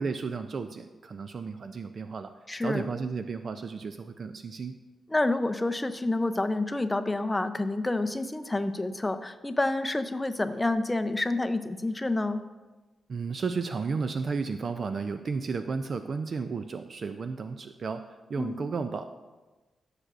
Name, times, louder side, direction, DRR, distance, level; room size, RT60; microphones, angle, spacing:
voice 1, 0.0-2.3 2.6-4.8 13.1-19.1, right 5 dB, 50° right, 8 dB, 0.4 m, -33 dB
voice 2, 2.5-2.9 5.1-12.4 18.4-18.6, left 2 dB, 15° left, 9 dB, 0.5 m, -28 dB
14.5 x 6.6 x 2.5 m, 1.2 s
wide cardioid pair, 125°, 0 cm